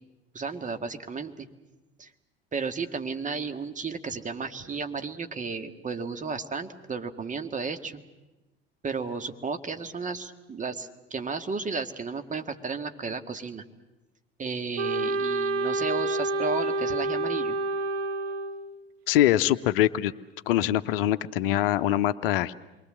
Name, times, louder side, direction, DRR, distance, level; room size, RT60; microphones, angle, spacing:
voice 1, 0.3-1.5 2.0-2.1 2.5-7.9 8.8-13.6 14.4-17.6, right 4 dB, 25° right, 8 dB, 1.8 m, -33 dB
Wind instrument woodwind instrument, 14.8-18.7, right 2 dB, 70° right, 1.4 m, -28 dB
voice 2, 19.1-20.1 20.5-22.5, left 13 dB, 65° left, 14 dB, 0.8 m, -23 dB
28.0 x 23.0 x 7.6 m, 1.1 s
figure-of-eight pair, 65°, 31 cm